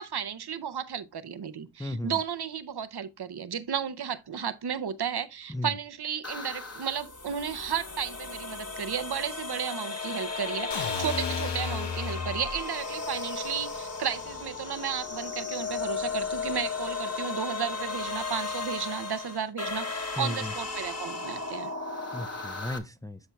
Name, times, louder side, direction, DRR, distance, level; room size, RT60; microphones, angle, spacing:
voice 1, 0.0-21.7, right 7 dB, 65° right, 0.6 m, -33 dB
voice 2, 1.8-2.2 5.5-5.7 20.2-20.5 22.1-23.2, left 1 dB, 10° left, 0.5 m, -34 dB
sound 1, 6.2-22.8, left 4 dB, 35° left, 1.2 m, -35 dB
sound 2, 10.7-12.6, left 5 dB, 75° left, 0.9 m, -33 dB
13.0 x 4.4 x 2.2 m
wide cardioid pair, 80°, 43 cm